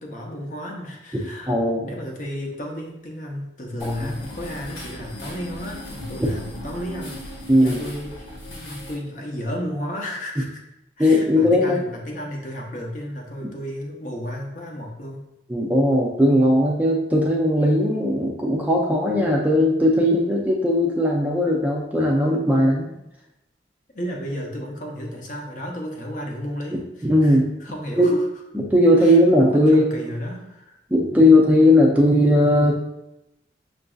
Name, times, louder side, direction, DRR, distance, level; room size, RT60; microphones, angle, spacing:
voice 1, 0.0-7.2 7.6-10.6 11.0-15.2 22.8-23.0 23.9-28.3 29.0-30.8, equal, 45° left, 0 dB, 0.7 m, -33 dB
voice 2, 1.5-1.9 3.8-4.1 7.5-7.8 11.0-11.8 15.5-22.9 27.0-27.5 28.0-28.1 28.7-29.9 30.9-32.7, left 1 dB, 10° right, -2 dB, 0.4 m, -18 dB
sound 1, 3.8-8.9, left 1 dB, 80° left, 1.1 m, -37 dB
5.9 x 2.6 x 2.3 m, 0.88 s
head